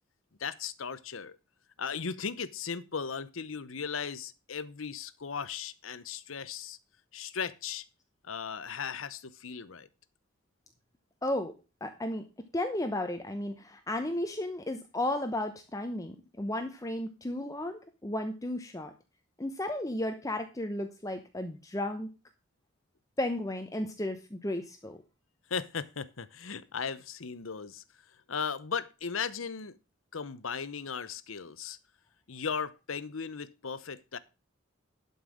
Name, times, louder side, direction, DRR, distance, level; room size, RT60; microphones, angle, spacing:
voice 1, 0.4-1.4 1.8-6.8 7.1-7.8 8.3-9.9 25.5-27.8 28.3-29.8 30.1-31.8 32.3-34.2, left 6 dB, 80° left, 0.9 m, -37 dB
voice 2, 11.2-11.6 11.8-18.9 19.4-22.1 23.2-25.0, left 1 dB, 15° left, 0.9 m, -34 dB
11.5 x 5.5 x 6.3 m
head